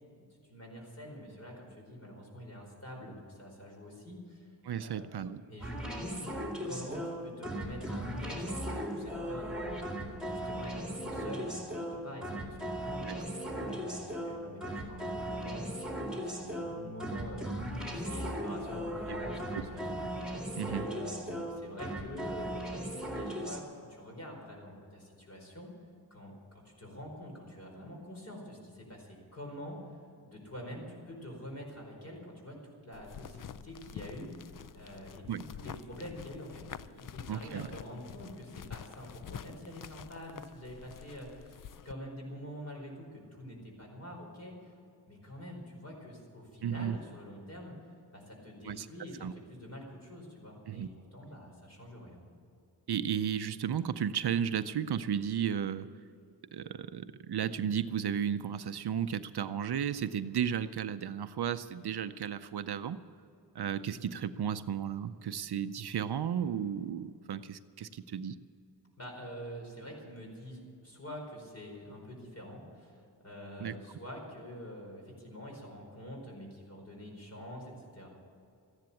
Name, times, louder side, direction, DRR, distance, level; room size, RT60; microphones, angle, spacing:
voice 1, 0.2-4.5 4.8-6.4 6.6-9.7 10.3-22.5 22.9-25.7 26.1-30.0 30.2-34.5 34.7-44.7 45.0-47.8 48.1-52.2 69.0-78.1, equal, 35° left, 0 dB, 4.7 m, -46 dB
voice 2, 4.6-5.4 13.0-13.1 19.1-19.2 19.5-19.6 20.6-20.9 35.3-35.4 37.3-37.7 46.6-47.0 48.6-48.9 49.2-49.3 50.7-50.9 52.9-55.9 56.5-63.0 63.5-68.4 73.6-73.7, right 8 dB, 70° right, 12 dB, 0.6 m, -34 dB
sound 1, 5.6-23.6, equal, ahead, 2.4 m, -37 dB
sound 2, 32.9-41.9, left 8 dB, 50° left, 0.5 m, -47 dB
14.5 x 10.5 x 8.4 m, 2.5 s
wide cardioid pair, 110°, 41 cm